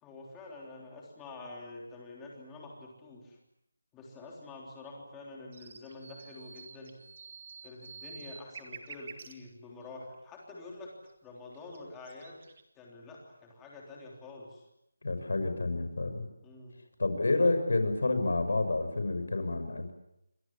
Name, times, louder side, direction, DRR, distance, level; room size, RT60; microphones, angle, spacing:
voice 1, 0.0-3.4 3.9-7.0 7.6-10.9 11.2-12.4 12.7-14.6 16.4-16.8, left 2 dB, 5° left, -1 dB, 3.4 m, -47 dB
sound 1, 5.5-9.3 11.1-11.2 11.5-12.6, right 5 dB, 30° right, 2.2 m, -48 dB
voice 2, 15.0-16.2 17.0-19.9, left 2 dB, 65° left, 8 dB, 6.4 m, -29 dB
29.5 x 24.5 x 7.4 m, 0.80 s
figure-of-eight pair, 180°, 0 cm